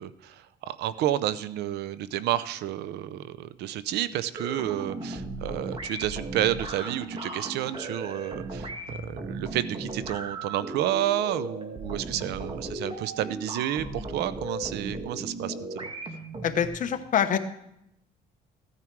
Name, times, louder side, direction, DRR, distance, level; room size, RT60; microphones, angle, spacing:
voice 1, 0.0-15.9, right 12 dB, 80° right, 15 dB, 0.7 m, -30 dB
sound 1, 4.3-16.7, right 2 dB, 30° right, 2.0 m, -36 dB
voice 2, 16.4-17.4, left 8 dB, 50° left, 9 dB, 1.1 m, -25 dB
15.5 x 9.7 x 4.7 m, 0.80 s
cardioid pair, 110°, 17 cm